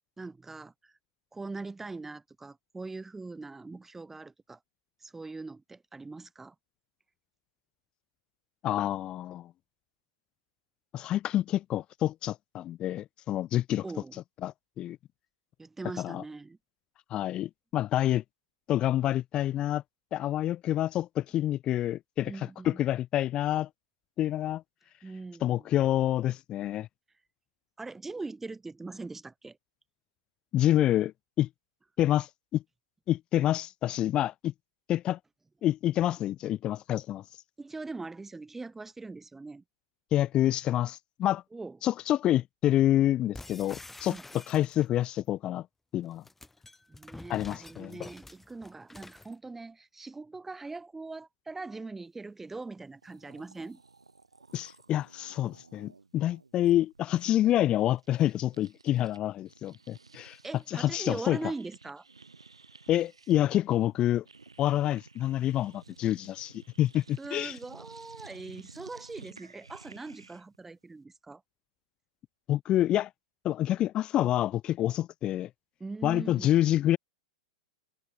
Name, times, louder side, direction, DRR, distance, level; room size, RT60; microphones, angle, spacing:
voice 1, 0.2-0.9 1.3-4.6 5.0-6.5 13.8-14.2 15.6-16.6 22.2-22.8 25.0-25.7 27.8-29.6 37.6-39.6 41.5-41.8 44.0-44.4 46.9-53.8 57.3-57.4 60.4-62.0 67.2-71.4 75.8-76.5, right 3 dB, 10° right, 1.1 m, -41 dB
voice 2, 8.6-9.5 10.9-13.8 14.4-15.0 16.0-16.2 17.1-18.2 18.7-19.8 20.1-22.3 22.6-23.7 24.2-24.6 25.4-26.9 30.5-31.5 32.0-32.6 33.1-34.5 34.9-35.2 35.6-37.2 40.1-41.4 41.8-44.2 44.5-45.7 45.9-46.2 47.3-48.1 54.5-60.4 60.7-61.4 62.9-64.2 64.6-67.6 72.5-73.1 73.4-75.5 76.0-77.0, left 13 dB, 30° left, 0.4 m, -27 dB
sound 1, 43.3-45.0 46.0-49.3, left 2 dB, 5° left, 5.9 m, -48 dB
sound 2, 52.7-52.8 53.0-59.2 59.5-70.6, right 4 dB, 90° right, 3.2 m, -54 dB
hypercardioid pair, 100°, 3 cm